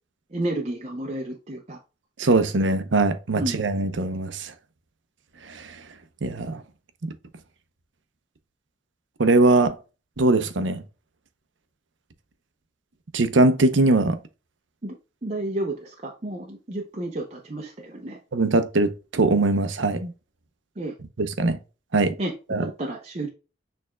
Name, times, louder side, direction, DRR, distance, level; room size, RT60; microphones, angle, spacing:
voice 1, 0.3-1.8 3.3-3.6 14.8-15.0 15.2-18.2 20.8-20.9 22.2-23.3, right 1 dB, 35° right, 0.7 m, -31 dB
voice 2, 2.2-4.5 5.5-5.8 6.2-6.6 7.0-7.1 9.2-9.8 10.2-10.8 13.1-14.2 18.3-20.1 21.4-21.6 21.9-22.1 22.5-22.6, right 2 dB, 85° right, 0.7 m, -21 dB
6.5 x 3.5 x 2.2 m
head